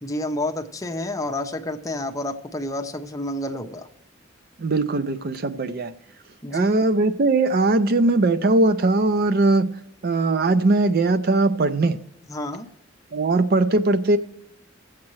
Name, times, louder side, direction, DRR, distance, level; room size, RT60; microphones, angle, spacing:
voice 1, 0.0-3.9 6.4-6.8 12.3-12.7, left 1 dB, 15° left, 0.7 m, -29 dB
voice 2, 4.6-5.9 6.5-9.8 10.0-12.0 13.1-14.2, right 2 dB, 50° right, 0.5 m, -20 dB
18.5 x 7.4 x 3.1 m
head